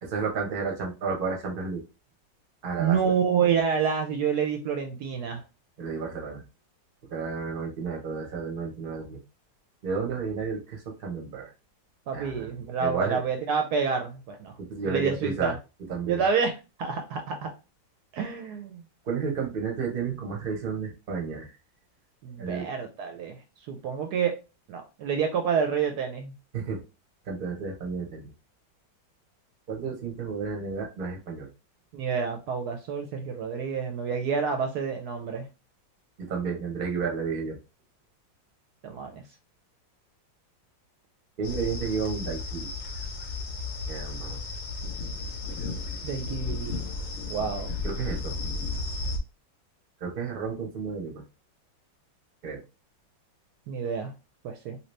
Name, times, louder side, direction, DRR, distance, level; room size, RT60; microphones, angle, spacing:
voice 1, 0.0-1.8 2.6-3.1 5.8-6.4 7.1-9.2 9.8-11.5 12.1-13.2 14.6-15.6 15.9-16.2 19.1-21.5 22.4-22.7 26.5-26.8 27.3-28.3 29.7-31.5 36.2-37.6 41.4-42.7 43.9-44.4 47.8-48.4 50.0-51.2 52.4-52.6, right 5 dB, 45° right, 1 dB, 0.8 m, -32 dB
voice 2, 2.8-5.4 12.1-14.5 14.9-15.5 16.1-16.5 16.8-17.5 18.1-18.8 22.2-23.4 23.7-24.4 24.7-26.3 31.9-35.5 38.8-39.2 46.0-46.8 47.3-47.7 53.7-54.1 54.4-54.8, right 6 dB, 70° right, 5 dB, 1.0 m, -28 dB
sound 1, 41.4-49.2, left 3 dB, 65° left, 0.6 m, -34 dB
3.0 x 2.7 x 3.1 m, 0.29 s
omnidirectional pair, 2.0 m